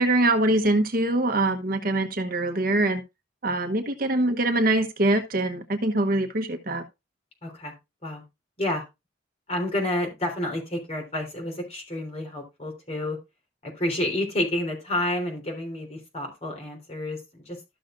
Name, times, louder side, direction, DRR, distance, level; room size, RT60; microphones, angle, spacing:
voice 1, 0.0-3.0 3.4-6.8, right 2 dB, 50° right, 1.1 m, -23 dB
voice 2, 7.4-7.7 8.0-8.2 8.6-8.8 9.5-13.2 13.6-17.6, left 1 dB, 35° left, 3.4 m, -29 dB
13.0 x 6.5 x 2.5 m
head